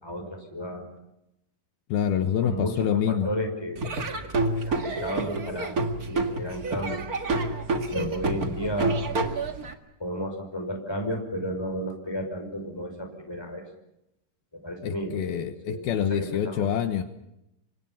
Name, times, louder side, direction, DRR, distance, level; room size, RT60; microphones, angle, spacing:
voice 1, 0.0-0.9 2.4-4.3 4.6-7.0 7.9-9.0 10.0-13.6 14.6-16.7, equal, 5° left, 4 dB, 5.2 m, -33 dB
voice 2, 1.9-3.3 8.0-8.1 14.8-17.0, left 9 dB, 75° left, 8 dB, 2.9 m, -26 dB
Laughter / Drum, 3.8-9.7, right 2 dB, 40° right, 1.2 m, -28 dB
29.5 x 25.5 x 5.8 m, 0.85 s
omnidirectional pair, 4.5 m